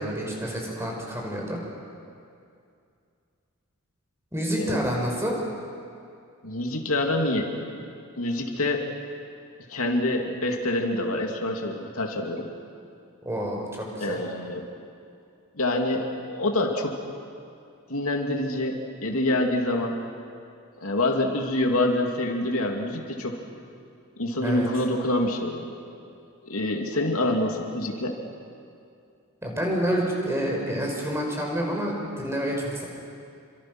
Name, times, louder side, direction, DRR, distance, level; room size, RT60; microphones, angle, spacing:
voice 1, 0.0-1.6 4.3-5.4 13.2-14.2 24.4-24.6 29.4-32.8, equal, 10° right, -1 dB, 5.0 m, -28 dB
voice 2, 6.4-7.5 8.2-8.8 9.7-12.5 14.0-14.6 15.6-17.0 17.9-20.0 20.8-23.4 24.2-25.7 26.5-28.2, left 1 dB, 75° left, 1 dB, 2.7 m, -26 dB
29.0 x 25.5 x 6.3 m, 2.4 s
head